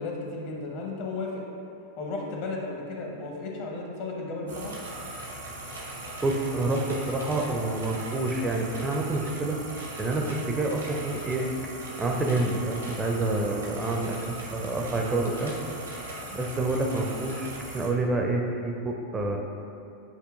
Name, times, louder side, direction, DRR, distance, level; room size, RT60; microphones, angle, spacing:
voice 1, 0.0-1.5 2.0-4.7, left 3 dB, 45° left, 0 dB, 0.7 m, -34 dB
sound 1, 4.5-17.9, right 1 dB, 75° right, 0.8 m, -39 dB
voice 2, 6.2-9.6 10.0-11.5 11.7-15.5 16.3-19.4, right 2 dB, 15° right, 1 dB, 0.4 m, -28 dB
8.0 x 2.7 x 2.4 m, 2.6 s
figure-of-eight pair, 90°, 0 cm